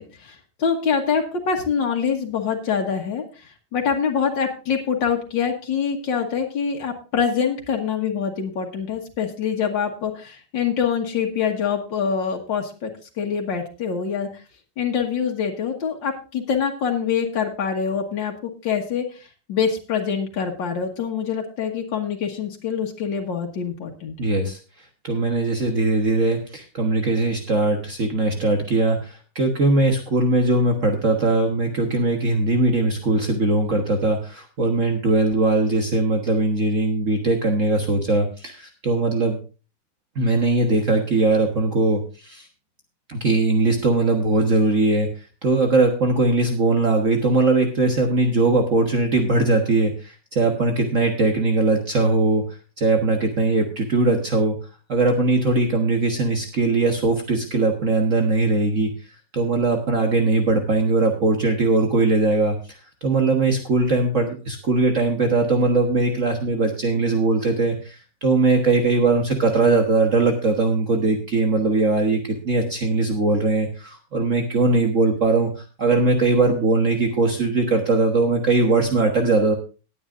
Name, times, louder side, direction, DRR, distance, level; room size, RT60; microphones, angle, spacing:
voice 1, 0.0-12.9 13.2-14.3 14.8-24.3, left 6 dB, 85° left, 1 dB, 2.2 m, -25 dB
voice 2, 24.2-24.6 25.0-39.4 40.1-42.5 43.1-45.1 45.4-52.4 52.8-54.5 54.9-58.9 59.3-79.6, right 3 dB, 45° right, 3 dB, 1.6 m, -20 dB
19.0 x 8.9 x 2.5 m, 0.33 s
omnidirectional pair, 2.0 m